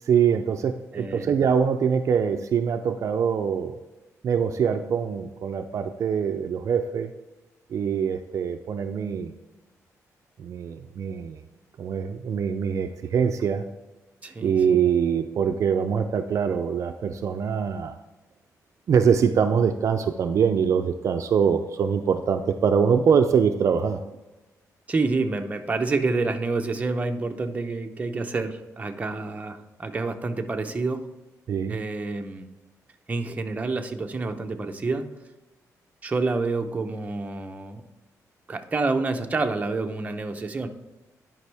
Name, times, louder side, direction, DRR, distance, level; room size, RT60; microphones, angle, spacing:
voice 1, 0.1-3.8 4.2-7.1 7.7-9.3 10.4-11.4 11.8-13.6 14.4-18.0 18.9-24.0 31.5-31.8, right 7 dB, 60° right, 7 dB, 0.5 m, -23 dB
voice 2, 0.9-1.3 14.2-14.8 24.9-31.0 31.7-32.5 33.1-35.1 36.0-37.8 38.5-40.7, right 3 dB, 25° right, 5 dB, 0.7 m, -28 dB
11.0 x 5.3 x 3.4 m, 1.1 s
cardioid pair, 125°, 6 cm